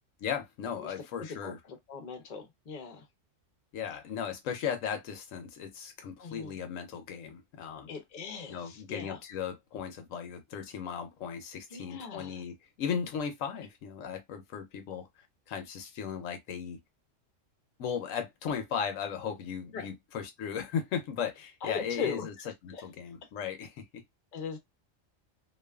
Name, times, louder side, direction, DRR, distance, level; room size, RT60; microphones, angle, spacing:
voice 1, 0.2-1.6 3.7-7.9 8.5-15.1 15.5-16.8 17.8-22.3 22.6-24.0, left 7 dB, 80° left, 1.1 m, -36 dB
voice 2, 1.2-3.1 6.2-6.5 7.9-9.2 11.7-12.4 19.7-19.9 21.6-22.3 22.7-22.8 24.3-24.6, left 5 dB, 45° left, 0.8 m, -40 dB
2.6 x 2.4 x 2.2 m
omnidirectional pair, 1.3 m